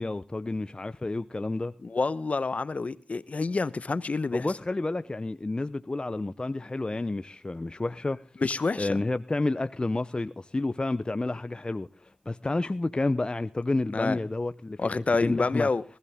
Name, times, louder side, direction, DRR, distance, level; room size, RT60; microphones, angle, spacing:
voice 1, 0.0-1.7 4.3-8.2 8.8-15.7, left 2 dB, 30° left, 0.7 m, -30 dB
voice 2, 1.8-4.5 8.4-9.0 13.9-14.2 14.8-15.8, left 3 dB, 45° left, 1.0 m, -28 dB
19.5 x 14.0 x 3.6 m
cardioid pair, 45°, 3 cm